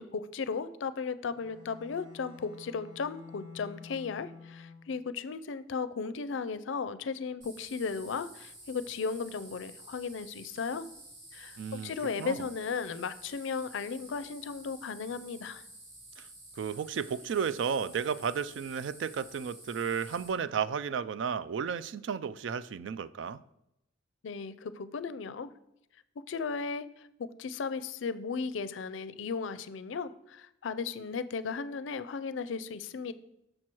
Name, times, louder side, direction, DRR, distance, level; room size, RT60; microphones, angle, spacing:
voice 1, 0.0-10.9 11.3-15.6 24.2-25.5 26.3-27.1 27.4-33.1, left 5 dB, 75° left, 0.4 m, -36 dB
Bowed string instrument, 1.3-5.1, left 5 dB, 25° right, 1.3 m, -50 dB
sound 1, 7.4-20.3, right 1 dB, 85° right, 2.9 m, -51 dB
voice 2, 11.6-11.9 12.2-12.4 16.2-16.3 16.6-23.4, right 7 dB, 65° right, 0.3 m, -33 dB
6.3 x 6.1 x 4.4 m
head